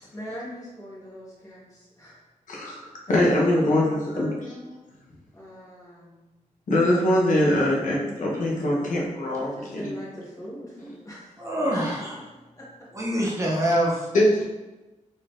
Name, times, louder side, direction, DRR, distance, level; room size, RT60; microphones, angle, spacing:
voice 1, 0.1-2.2 3.1-4.8 5.3-6.2 9.4-12.2 12.5-12.9, equal, 25° left, -6 dB, 1.3 m, -39 dB
voice 2, 2.5-4.3 6.7-9.9 14.1-14.4, left 1 dB, 80° left, -3 dB, 0.9 m, -22 dB
voice 3, 11.4-12.1 12.9-14.1, equal, 25° right, -3 dB, 0.6 m, -25 dB
4.1 x 3.5 x 2.5 m, 1.1 s
wide cardioid pair, 165°, 13 cm